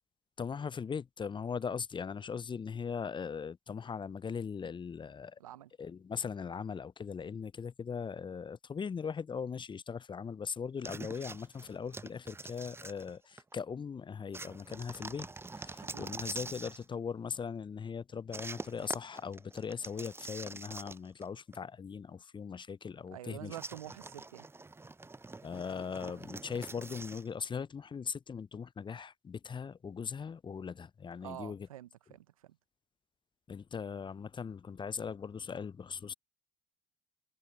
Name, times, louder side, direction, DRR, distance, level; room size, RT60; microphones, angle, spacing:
voice 1, 0.4-5.4 5.8-15.3 15.5-23.6 25.4-31.7 33.5-36.1, left 6 dB, 25° left, 0.6 m, -39 dB
voice 2, 5.4-5.7 15.9-16.1 23.1-24.5 31.2-32.6, right 13 dB, 85° right, 1.0 m, -47 dB
sound 1, 10.8-13.5 14.3-16.8 18.3-21.3 21.5-21.6 23.5-27.3, right 3 dB, 15° right, 0.6 m, -45 dB
hypercardioid pair, 50°, 17 cm